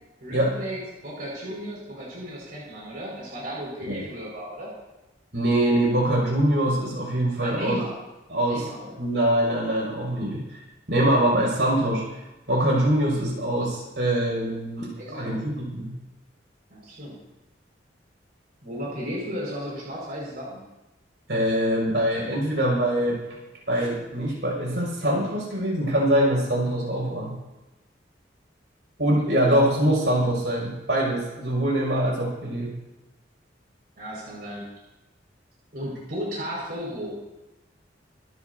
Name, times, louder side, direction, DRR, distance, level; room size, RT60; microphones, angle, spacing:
voice 1, 0.2-4.7 7.4-7.9 8.5-9.0 15.0-15.4 16.7-17.2 18.6-20.6 34.0-34.7 35.7-37.1, equal, 55° right, -5 dB, 5.5 m, -34 dB
voice 2, 5.3-7.8 8.3-8.7 9.0-10.6 10.9-12.0 12.5-15.9 21.3-23.2 23.7-27.4 29.0-32.7, right 1 dB, 70° right, -2 dB, 6.3 m, -23 dB
26.5 x 12.5 x 2.8 m, 1.0 s
head